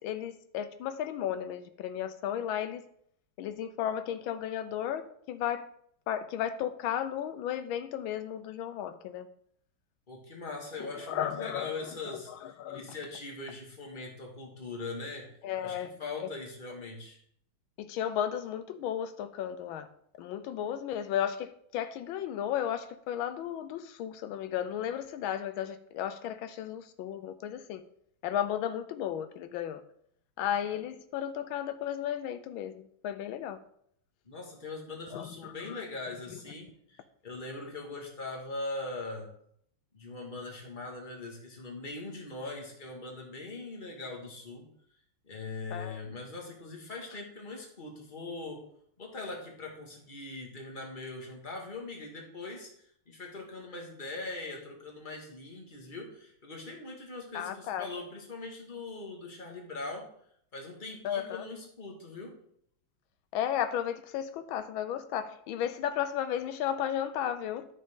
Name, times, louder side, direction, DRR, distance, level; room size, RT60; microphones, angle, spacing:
voice 1, 0.0-2.8 3.4-5.6 6.1-9.3 10.8-12.9 15.4-15.9 16.2-16.3 17.8-19.9 20.2-27.8 28.2-29.8 30.4-33.6 35.1-35.8 45.7-46.0 57.3-57.9 61.0-61.4 63.3-67.7, left 10 dB, 85° left, 10 dB, 1.4 m, -34 dB
voice 2, 10.1-15.3 15.6-17.2 34.3-39.3 39.9-44.7 45.2-48.6 49.0-52.7 53.1-60.1 60.5-62.3, left 3 dB, 25° left, 0 dB, 1.8 m, -41 dB
12.0 x 6.3 x 3.7 m, 0.67 s
omnidirectional pair, 2.2 m